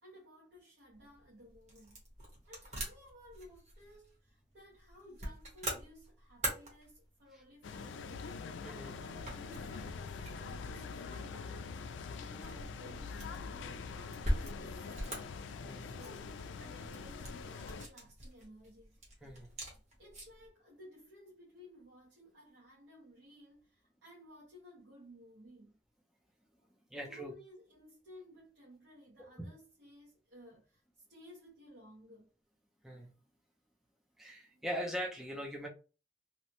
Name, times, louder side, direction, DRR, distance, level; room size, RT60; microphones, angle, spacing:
voice 1, 0.0-2.0 2.5-8.3 9.0-11.7 12.1-15.4 15.7-19.0 20.0-25.8 26.6-32.3 34.5-34.6, equal, 75° right, 0.8 m, -57 dB
sound 1, 0.9-20.5, equal, 40° right, 0.9 m, -44 dB
sound 2, 7.6-17.9, left 5 dB, 85° left, 0.3 m, -44 dB
voice 2, 8.6-9.0 15.6-16.0 19.2-19.5 26.9-27.3 29.4-29.5 32.8-33.1 34.2-35.7, equal, ahead, 0.4 m, -41 dB
2.7 x 2.0 x 2.9 m
head